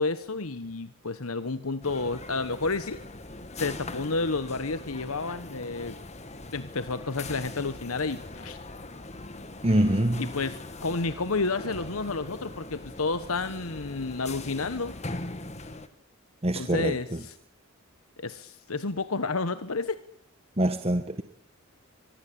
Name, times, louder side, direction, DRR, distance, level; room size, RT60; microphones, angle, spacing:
voice 1, 0.0-3.0 3.6-6.0 6.5-8.6 10.2-14.9 16.5-17.3 18.2-20.0, left 3 dB, 80° left, 12 dB, 1.3 m, -30 dB
sound 1, 1.8-15.9, left 2 dB, 30° left, 1.9 m, -41 dB
voice 2, 9.6-10.3 16.4-17.2 20.6-21.2, right 1 dB, 30° right, 8 dB, 1.3 m, -25 dB
24.5 x 20.0 x 8.7 m, 0.65 s
head